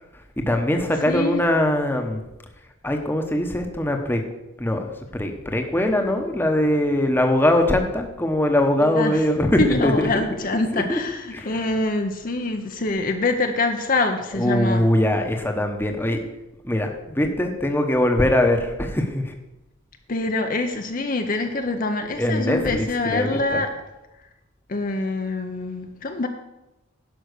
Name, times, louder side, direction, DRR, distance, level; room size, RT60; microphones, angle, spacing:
voice 1, 0.4-2.2 2.8-4.2 4.6-10.1 10.7-11.0 11.3-11.5 14.4-16.2 16.6-19.3 22.2-23.6, left 1 dB, 10° left, 4 dB, 1.0 m, -22 dB
voice 2, 1.1-1.4 8.8-9.3 9.6-14.8 20.1-23.7 24.7-26.3, left 2 dB, 40° left, 5 dB, 0.7 m, -25 dB
11.0 x 5.7 x 6.6 m, 0.98 s
head